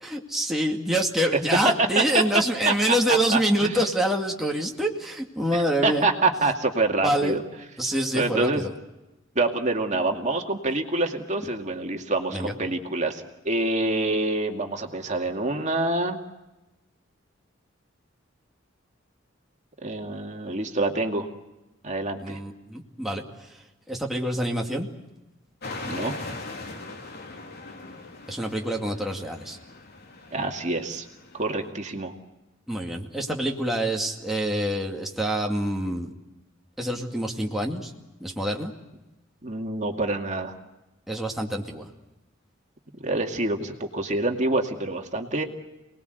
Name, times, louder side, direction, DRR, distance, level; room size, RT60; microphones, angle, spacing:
voice 1, 0.0-6.1 7.0-7.3 7.8-8.7 12.3-12.5 22.2-23.2 23.9-24.9 28.3-29.6 32.7-36.1 36.8-37.9 38.2-38.7 41.1-41.9, right 1 dB, ahead, -1 dB, 2.3 m, -26 dB
voice 2, 1.6-2.2 2.7-3.8 5.5-7.4 8.1-8.6 9.4-16.2 19.8-21.3 21.8-22.4 25.8-26.1 30.3-31.1 31.3-32.1 39.4-40.5 43.0-45.4, right 2 dB, 40° right, 3 dB, 2.4 m, -26 dB
sound 1, 25.6-31.7, left 2 dB, 55° left, 3.6 m, -40 dB
28.5 x 20.5 x 8.1 m, 1.0 s
head